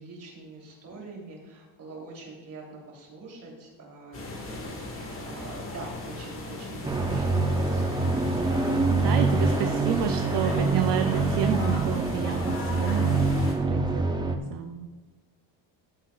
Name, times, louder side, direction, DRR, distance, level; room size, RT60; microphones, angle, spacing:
voice 1, 0.0-8.2, right 3 dB, 45° right, -2 dB, 3.2 m, -44 dB
sound 1, 4.1-13.5, left 2 dB, 30° left, 1.7 m, -37 dB
sound 2, 6.8-14.4, right 3 dB, 10° right, 0.4 m, -25 dB
voice 2, 8.9-14.9, right 10 dB, 60° right, 8 dB, 0.6 m, -31 dB
14.0 x 8.2 x 2.4 m, 1.3 s
cardioid pair, 155°, 46 cm